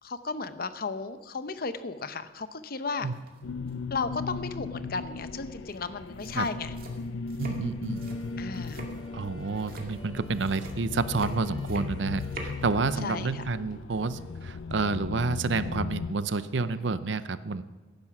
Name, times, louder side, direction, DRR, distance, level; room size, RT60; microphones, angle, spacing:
voice 1, 0.0-3.1 3.9-6.7 8.4-8.9 13.0-13.4 16.8-17.0, left 4 dB, 50° left, 11 dB, 0.8 m, -34 dB
sound 1, 3.1-3.4 3.7-4.0 5.7-5.8 6.1-12.6, right 2 dB, 50° right, 2.1 m, -45 dB
sound 2, 3.4-16.1, left 4 dB, 80° left, 0.4 m, -37 dB
voice 2, 7.4-8.0 9.1-17.6, right 4 dB, 70° right, 14 dB, 0.6 m, -29 dB
sound 3, 7.6-15.0, left 2 dB, 20° left, 1.5 m, -52 dB
15.5 x 10.5 x 6.0 m, 1.2 s
head